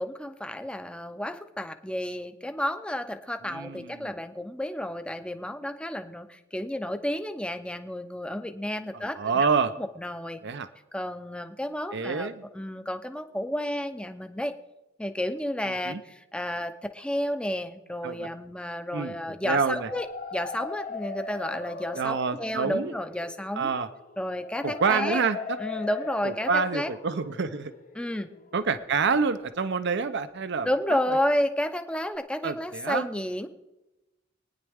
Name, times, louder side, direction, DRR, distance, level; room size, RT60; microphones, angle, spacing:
voice 1, 0.0-9.5 10.0-10.4 10.9-12.3 12.5-14.5 15.0-20.1 20.3-23.7 24.2-25.2 25.6-26.9 27.9-28.3 30.6-33.5, left 1 dB, 5° left, 8 dB, 0.7 m, -31 dB
voice 2, 3.5-4.1 9.1-9.7 10.4-10.7 11.9-12.4 15.8-16.0 18.0-18.3 18.9-19.2 19.4-19.9 22.0-22.9 23.6-23.9 24.6-25.4 26.2-27.7 28.5-31.2 32.4-33.1, right 5 dB, 60° right, 12 dB, 0.6 m, -27 dB
sound 1, 19.7-29.4, left 4 dB, 40° left, 0.8 m, -40 dB
24.5 x 9.7 x 3.6 m, 1.0 s
head